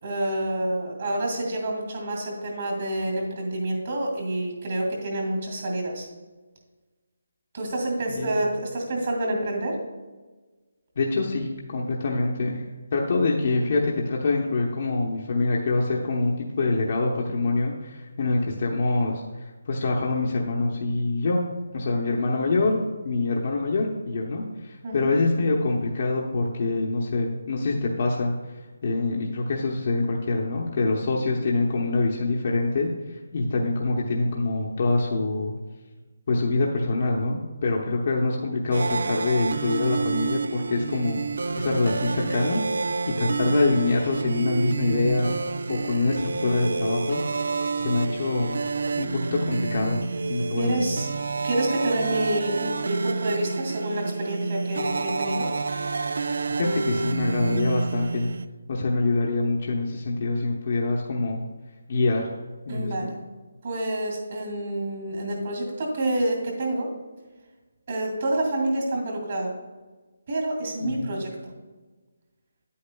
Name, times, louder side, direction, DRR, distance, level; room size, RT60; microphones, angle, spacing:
voice 1, 0.0-6.1 7.5-9.8 22.1-22.2 24.8-25.1 50.6-51.1 51.4-55.5 62.7-63.2 63.6-66.9 67.9-69.5 70.3-71.3, right 1 dB, 45° right, 1 dB, 2.4 m, -28 dB
voice 2, 11.0-12.6 12.9-21.4 21.7-22.8 23.0-28.3 28.8-35.6 36.3-41.2 41.5-42.6 43.2-45.4 45.7-47.2 47.8-48.5 49.0-50.0 50.3-50.8 56.7-58.3 58.7-61.4 61.9-62.3 62.7-63.1 70.8-71.1, left 3 dB, 40° left, -2 dB, 0.8 m, -25 dB
sound 1, 38.7-58.5, right 4 dB, 65° right, 0.3 m, -29 dB
9.5 x 8.5 x 2.3 m, 1.3 s
hypercardioid pair, 170°, 0 cm